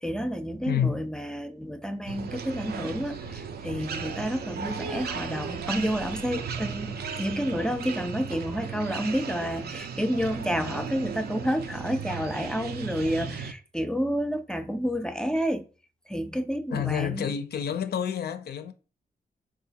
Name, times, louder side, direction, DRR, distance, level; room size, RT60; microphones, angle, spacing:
voice 1, 0.0-15.6 16.1-17.3, equal, 5° left, 0.3 m, -30 dB
voice 2, 0.7-1.0 16.7-18.7, left 8 dB, 70° left, 0.4 m, -29 dB
sound 1, 2.1-13.5, right 6 dB, 70° right, 0.4 m, -36 dB
3.7 x 2.4 x 2.7 m
cardioid pair, 80°, 17 cm